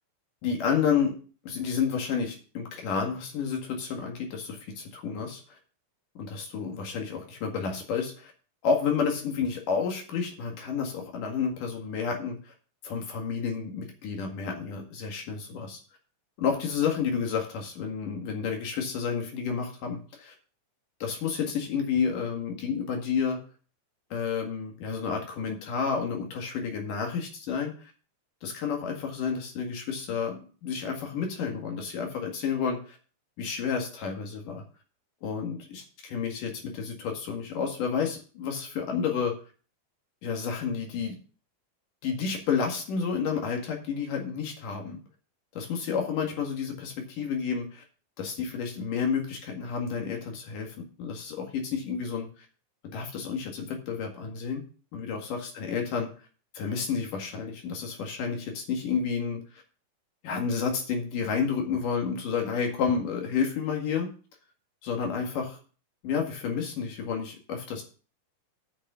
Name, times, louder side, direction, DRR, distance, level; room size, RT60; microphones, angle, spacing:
voice 1, 0.4-1.1 1.4-5.6 6.1-8.3 8.6-12.5 12.8-15.8 16.4-20.3 21.0-23.4 24.1-27.9 28.4-33.0 33.4-34.6 35.2-39.3 40.2-41.2 42.0-45.0 45.5-47.8 48.2-52.3 52.9-54.6 54.9-56.1 56.5-59.6 60.2-64.1 64.8-65.6 66.0-67.8, left 6 dB, 80° left, 2 dB, 3.5 m, -30 dB
8.3 x 6.4 x 6.9 m, 0.38 s
omnidirectional pair, 3.7 m